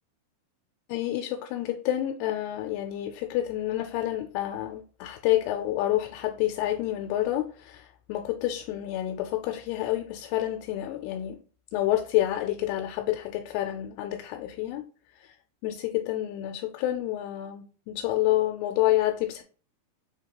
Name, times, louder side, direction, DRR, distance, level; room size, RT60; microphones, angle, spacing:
voice 1, 0.9-11.4 11.7-14.8 15.1-15.4 15.6-19.4, left 14 dB, 90° left, 4 dB, 2.6 m, -28 dB
6.5 x 2.8 x 2.8 m, 0.39 s
omnidirectional pair, 4.6 m